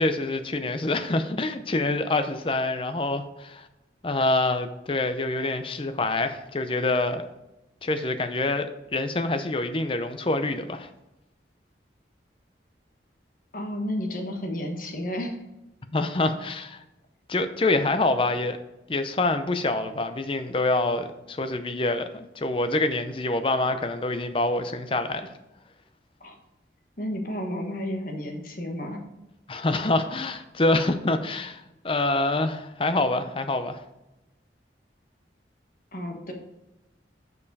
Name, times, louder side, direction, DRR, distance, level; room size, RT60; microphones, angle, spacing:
voice 1, 0.0-3.7 4.0-7.2 7.8-10.9 15.9-16.8 17.3-18.6 18.9-25.3 29.5-33.8, left 2 dB, 30° left, 9 dB, 0.6 m, -26 dB
voice 2, 13.5-15.4 26.2-26.3 27.0-29.0 35.9-36.3, left 1 dB, 50° left, 2 dB, 1.3 m, -32 dB
7.0 x 5.4 x 4.8 m, 0.94 s
head